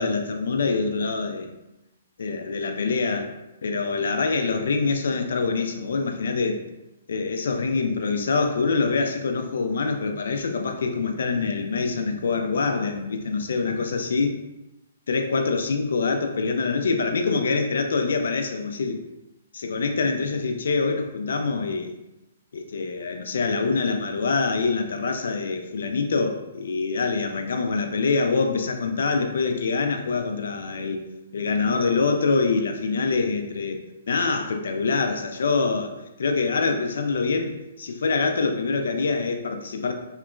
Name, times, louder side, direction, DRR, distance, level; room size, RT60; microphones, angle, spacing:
voice 1, 0.0-1.5 2.2-3.3 3.6-6.6 7.1-14.4 15.1-19.0 19.5-21.9 22.5-31.0 31.3-33.8 34.1-35.9 36.2-39.9, left 4 dB, 70° left, 5 dB, 0.3 m, -25 dB
2.8 x 2.1 x 2.4 m, 0.95 s
hypercardioid pair, 130°, 0 cm